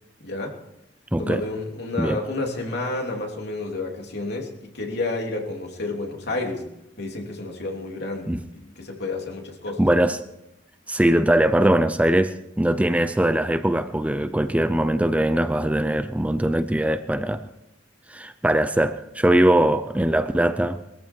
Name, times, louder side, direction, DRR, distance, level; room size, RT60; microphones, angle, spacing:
voice 1, 0.2-0.6 1.2-6.6 7.0-9.8, left 2 dB, 65° left, 1 dB, 3.2 m, -30 dB
voice 2, 1.1-1.4 2.0-2.2 8.3-8.4 9.8-10.2 10.9-17.4 18.1-20.8, right 1 dB, 5° right, 10 dB, 0.6 m, -21 dB
21.0 x 14.5 x 4.6 m, 0.88 s
head